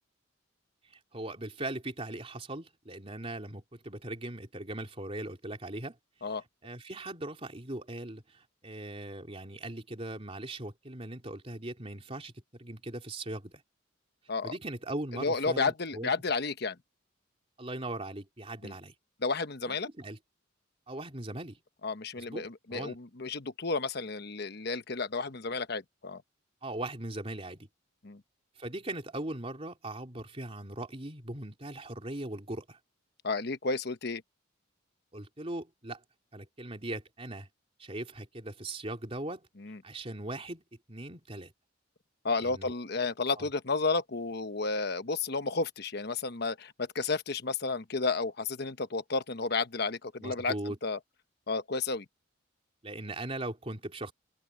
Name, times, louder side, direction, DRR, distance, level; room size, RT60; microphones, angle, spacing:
voice 1, 0.8-6.0 6.6-13.5 14.4-16.1 17.6-18.9 19.7-20.2 20.9-21.6 22.2-23.0 26.6-27.7 28.6-32.8 35.1-36.0 36.3-37.5 37.8-39.5 39.8-40.6 40.9-41.5 42.4-42.7 43.4-43.5 50.2-50.8 52.8-54.1, right 1 dB, 30° right, 3.3 m, -39 dB
voice 2, 15.1-16.8 18.6-18.7 19.2-19.9 21.8-26.2 28.0-28.2 33.2-34.2 39.6-39.8 42.2-51.0 51.5-52.0, left 4 dB, 55° left, 1.1 m, -32 dB
open air
head